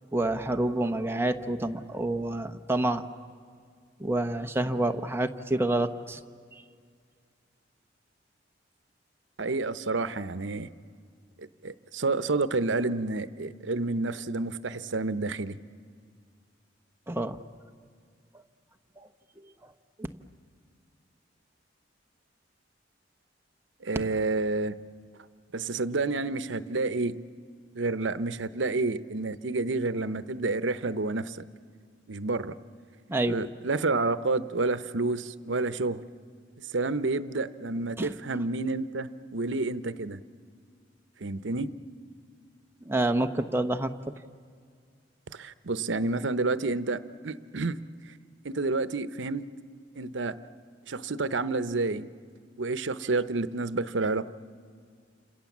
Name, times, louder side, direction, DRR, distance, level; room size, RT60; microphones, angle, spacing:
voice 1, 0.1-3.0 4.0-6.2 17.1-17.4 19.0-19.1 19.6-19.7 20.0-20.1 33.1-33.4 38.0-38.1 42.8-43.9, right 1 dB, 15° right, 7 dB, 0.9 m, -28 dB
voice 2, 9.4-10.7 11.4-15.6 23.8-24.7 25.5-27.2 27.7-31.4 32.1-32.5 33.3-36.0 36.7-40.2 41.2-41.7 45.3-47.8 48.1-48.2 48.4-49.5 50.0-50.3 50.9-52.1 52.6-54.3, right 3 dB, 85° right, 13 dB, 0.8 m, -29 dB
29.5 x 27.0 x 7.3 m, 2.1 s
head